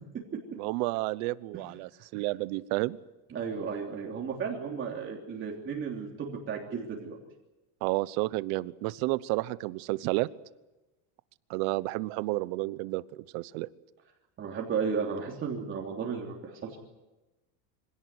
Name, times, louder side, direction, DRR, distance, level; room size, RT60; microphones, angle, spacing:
voice 1, 0.5-3.0 7.8-10.3 11.5-13.7, right 20 dB, 60° right, 17 dB, 1.0 m, -31 dB
voice 2, 3.3-7.2 14.4-16.8, right 6 dB, 25° right, -1 dB, 3.3 m, -34 dB
25.5 x 17.5 x 9.8 m, 1.1 s
cardioid pair, 165°, 45 cm